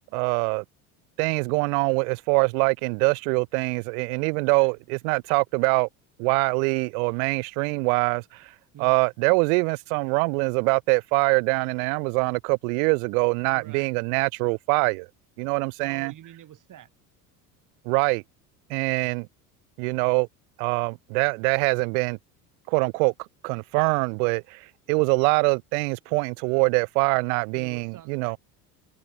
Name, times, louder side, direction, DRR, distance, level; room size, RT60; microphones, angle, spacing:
voice 1, 0.1-0.6 1.2-5.9 6.2-8.5 8.8-15.1 15.4-16.1 17.9-18.2 18.7-19.3 19.8-20.3 20.6-22.2 22.7-23.1 23.4-28.4, right 33 dB, 70° right, 0.7 m, -24 dB
voice 2, 8.7-9.1 13.5-13.9 15.8-16.9 27.5-28.4, right 11 dB, 40° right, 2.7 m, -47 dB
hypercardioid pair, 80°, 45 cm